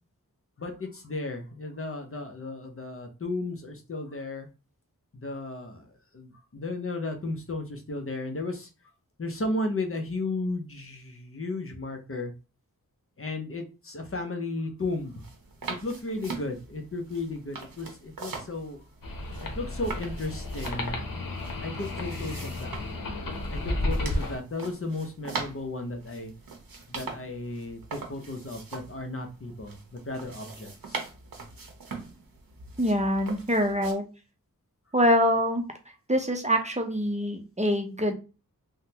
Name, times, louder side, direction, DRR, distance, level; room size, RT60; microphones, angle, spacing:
voice 1, 0.6-4.5 5.2-5.8 6.1-8.7 9.2-12.3 13.2-15.1 15.7-18.8 19.5-21.0 21.6-22.8 23.5-26.3 26.9-29.8 30.1-31.0, left 2 dB, 40° left, 3 dB, 0.7 m, -34 dB
sound 1, 14.8-33.9, right 4 dB, 85° right, 0.8 m, -42 dB
sound 2, 19.0-24.4, left 1 dB, 75° left, 0.8 m, -32 dB
voice 2, 32.8-34.0 34.9-35.6 36.1-38.1, equal, 20° right, 3 dB, 0.6 m, -24 dB
3.5 x 2.1 x 2.8 m, 0.31 s
wide cardioid pair, 70°, 34 cm